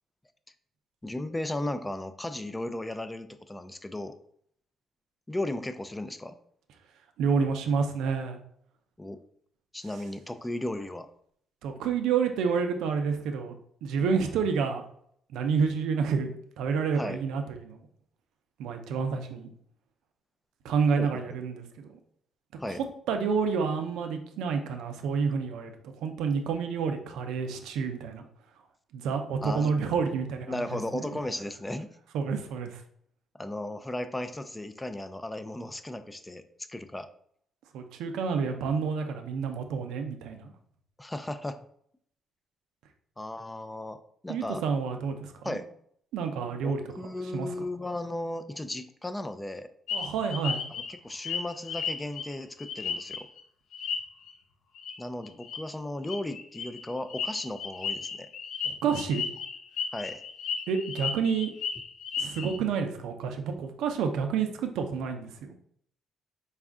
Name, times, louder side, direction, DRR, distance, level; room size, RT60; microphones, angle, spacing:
voice 1, 1.0-4.1 5.3-6.4 9.0-9.2 9.7-11.1 16.9-17.2 21.0-21.4 22.6-22.8 29.4-29.7 30.5-31.9 33.4-36.4 36.7-37.1 41.0-41.6 43.2-44.6 45.4-45.7 46.6-49.7 50.7-53.3 55.0-58.3 59.9-60.2, left 1 dB, 15° left, 10 dB, 0.4 m, -35 dB
voice 2, 7.2-8.4 11.6-13.6 13.8-14.8 15.3-17.8 18.6-19.5 20.6-21.9 23.1-28.2 28.9-30.8 32.1-32.8 37.7-40.5 44.3-45.6 46.1-46.8 47.3-47.5 49.9-50.6 58.6-59.2 60.7-61.5 62.2-65.6, right 5 dB, 90° right, 6 dB, 0.5 m, -29 dB
sound 1, 49.9-53.4 53.7-54.3 54.8-55.0 55.3-55.6 56.1-62.6, left 6 dB, 75° left, 0.5 m, -34 dB
4.2 x 2.4 x 3.6 m, 0.67 s
cardioid pair, 90°, 0 cm